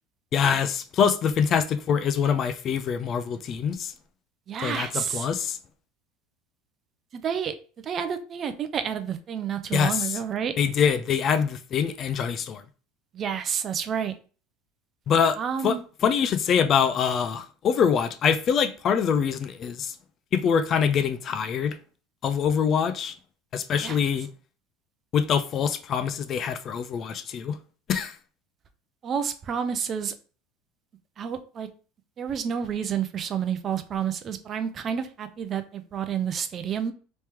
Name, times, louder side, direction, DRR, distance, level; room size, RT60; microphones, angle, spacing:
voice 1, 0.3-3.9 4.6-5.6 9.7-10.0 10.6-12.6 15.1-15.4 15.6-15.8 16.0-19.9 20.3-21.8 22.2-23.1 23.5-24.3 25.1-27.6 27.9-28.1, left 7 dB, 40° left, 0.4 m, -24 dB
voice 2, 4.5-5.3 7.1-7.5 7.8-10.5 13.1-14.1 15.4-15.8 23.8-24.0 29.0-30.1 31.2-31.7 32.2-36.9, right 7 dB, 40° right, 0.5 m, -29 dB
3.1 x 2.9 x 3.4 m
supercardioid pair, 110°, 0 cm